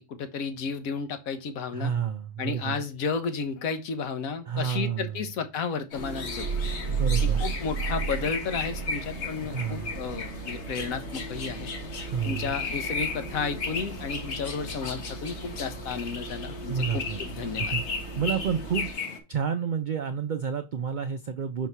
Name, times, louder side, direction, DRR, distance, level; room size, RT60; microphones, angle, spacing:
voice 1, 0.1-1.9 2.4-6.6 7.2-11.7 12.2-17.7, left 5 dB, 90° left, 9 dB, 1.3 m, -33 dB
voice 2, 1.7-2.9 4.5-5.2 6.9-7.5 9.4-9.9 12.0-12.6 16.7-17.8 18.2-18.9 19.3-21.7, right 7 dB, 80° right, 8 dB, 0.4 m, -30 dB
sound 1, 5.9-19.2, left 5 dB, 55° left, 1.2 m, -35 dB
Bus, 6.0-18.9, right 4 dB, 60° right, 1.3 m, -40 dB
sound 2, 6.4-9.1, right 6 dB, 45° right, 0.9 m, -29 dB
4.6 x 4.1 x 5.5 m, 0.28 s
omnidirectional pair, 1.4 m